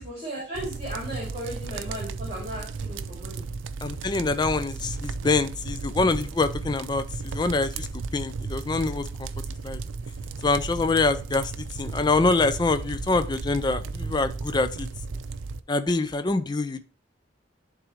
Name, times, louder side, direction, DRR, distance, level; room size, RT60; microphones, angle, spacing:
voice 1, 0.0-3.4, right 1 dB, 30° right, -4 dB, 2.7 m, -36 dB
sound 1, 0.5-15.6, right 4 dB, 85° right, 0.5 m, -34 dB
voice 2, 3.8-7.9 8.1-9.3 9.6-9.8 10.4-11.5 11.8-14.9 15.7-16.8, left 3 dB, 20° left, 11 dB, 0.4 m, -25 dB
11.0 x 3.7 x 3.1 m, 0.39 s
head